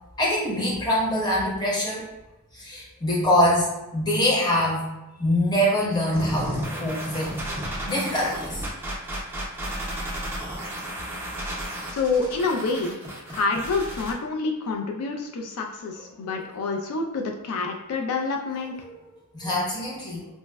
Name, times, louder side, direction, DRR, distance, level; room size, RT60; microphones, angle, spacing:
voice 1, 0.2-2.0 2.5-4.9 5.2-7.3 7.8-8.6 15.9-16.0 18.8-19.0 19.3-20.3, left 1 dB, 20° left, -5 dB, 0.8 m, -24 dB
sound 1, 6.1-14.1, equal, 10° right, 0.5 m, -33 dB
voice 2, 11.9-13.0 13.3-18.7, left 3 dB, 80° left, 2 dB, 0.4 m, -27 dB
4.2 x 2.1 x 2.2 m, 1.0 s
head